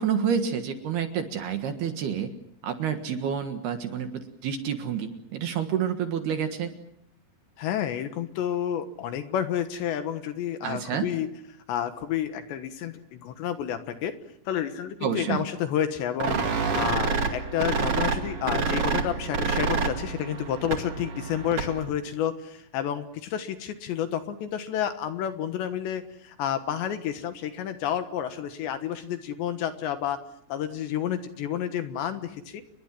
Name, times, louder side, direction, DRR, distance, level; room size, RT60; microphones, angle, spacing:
voice 1, 0.0-2.3 2.6-6.7 10.6-11.1 15.0-15.4, right 8 dB, 60° right, 7 dB, 3.1 m, -29 dB
voice 2, 7.6-11.3 11.7-14.1 14.5-30.2 30.5-32.6, left 10 dB, 70° left, 9 dB, 3.2 m, -30 dB
sound 1, 16.2-21.9, right 5 dB, 45° right, 2.1 m, -28 dB
29.5 x 22.0 x 7.6 m, 0.70 s
omnidirectional pair, 5.9 m